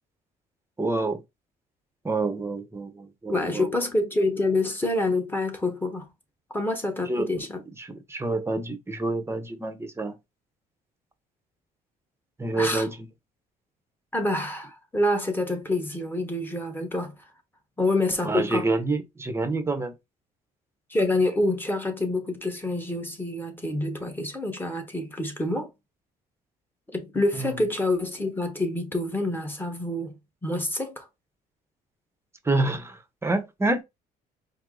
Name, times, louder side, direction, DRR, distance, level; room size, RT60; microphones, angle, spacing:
voice 1, 0.8-1.2 2.0-3.7 7.1-7.3 7.8-10.1 12.4-12.9 18.2-19.9 27.4-27.5 32.5-33.8, right 2 dB, 15° right, 0.8 m, -27 dB
voice 2, 3.3-6.1 6.5-7.6 12.5-12.9 14.1-17.1 17.8-18.7 20.9-25.7 26.9-31.1, left 2 dB, 10° left, 1.1 m, -27 dB
4.5 x 2.0 x 3.8 m
cardioid pair, 110°, 17 cm